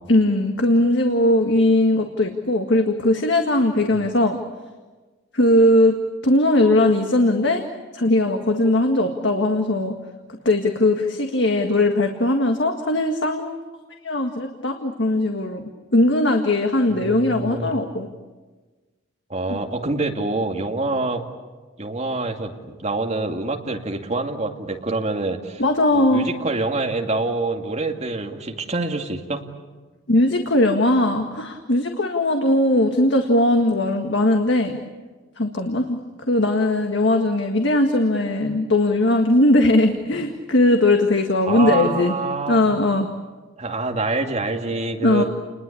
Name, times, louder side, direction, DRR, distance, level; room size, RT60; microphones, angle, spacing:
voice 1, 0.1-4.4 5.3-6.0 6.2-7.7 7.9-9.9 10.5-13.6 14.0-18.1 19.5-19.6 25.6-26.3 30.1-34.8 35.4-36.0 36.3-42.1 42.5-43.1 45.0-45.2, left 1 dB, 60° left, 4 dB, 1.8 m, -19 dB
voice 2, 16.9-17.7 19.3-21.2 21.8-25.6 25.9-29.4 41.5-42.7 43.6-45.2, right 2 dB, 35° right, 2 dB, 2.4 m, -26 dB
30.0 x 21.0 x 8.6 m, 1.3 s
head